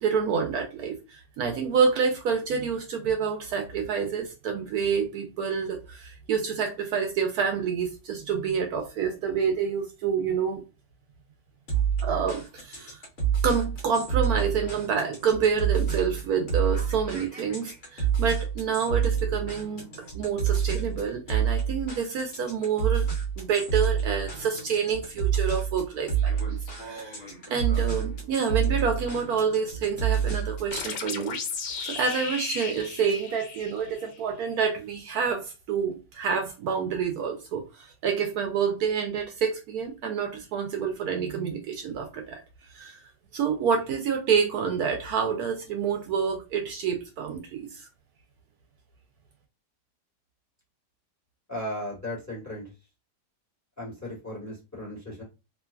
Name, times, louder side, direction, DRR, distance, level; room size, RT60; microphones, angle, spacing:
voice 1, 0.0-10.6 12.0-13.0 13.4-23.1 23.4-27.2 27.5-31.4 31.8-42.4 42.7-43.0 43.3-47.9, right 6 dB, 75° right, 1.0 m, -28 dB
sound 1, 11.7-30.8, right 8 dB, 50° left, 1.2 m, -28 dB
sound 2, 30.7-34.2, left 5 dB, 80° left, 1.3 m, -35 dB
voice 2, 51.5-52.7 53.8-55.2, left 1 dB, 10° left, 1.1 m, -36 dB
3.0 x 2.3 x 2.3 m
omnidirectional pair, 1.8 m